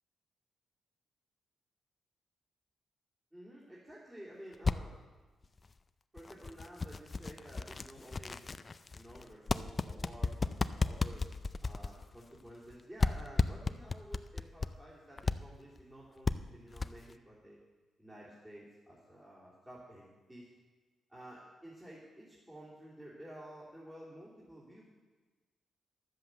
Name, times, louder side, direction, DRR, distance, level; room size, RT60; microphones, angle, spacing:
voice 1, 3.3-4.9 6.1-8.4 8.9-11.3 11.6-17.6 18.0-20.5 21.1-24.9, equal, 15° right, -9 dB, 3.2 m, -52 dB
sound 1, 4.5-4.8 5.4-5.6 6.2-12.7 13.0-14.7 15.2-15.4 15.8-15.9 16.2-16.4 16.7-17.1, left 4 dB, 30° left, 0.4 m, -33 dB
11.5 x 7.7 x 7.9 m, 1.3 s
cardioid pair, 85°, 0 cm